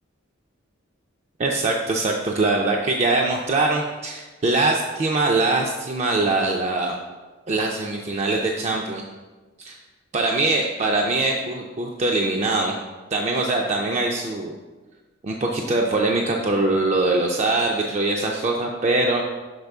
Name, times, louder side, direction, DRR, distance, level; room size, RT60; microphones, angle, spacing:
voice 1, 1.4-6.9 7.5-9.0 9.6-9.8 10.1-12.7 13.1-14.5 15.2-19.2, right 2 dB, 35° right, 0 dB, 0.3 m, -22 dB
6.6 x 4.2 x 3.5 m, 1.3 s
head